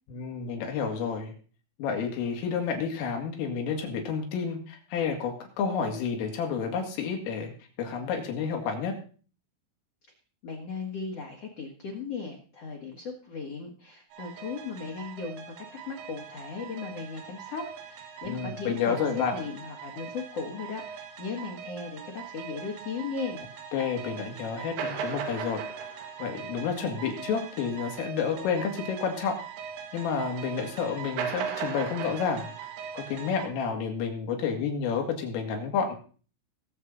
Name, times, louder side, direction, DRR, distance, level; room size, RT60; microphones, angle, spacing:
voice 1, 0.1-1.3 1.8-7.5 7.8-9.0 18.2-19.4 23.7-25.6 26.2-29.4 29.9-32.5 32.9-36.0, left 6 dB, 85° left, 3 dB, 4.9 m, -30 dB
voice 2, 10.4-19.0 19.3-23.4, left 5 dB, 70° left, 0 dB, 1.5 m, -37 dB
sound 1, 14.1-33.5, right 7 dB, 85° right, 4.4 m, -39 dB
22.0 x 7.4 x 3.9 m, 0.40 s
omnidirectional pair, 5.7 m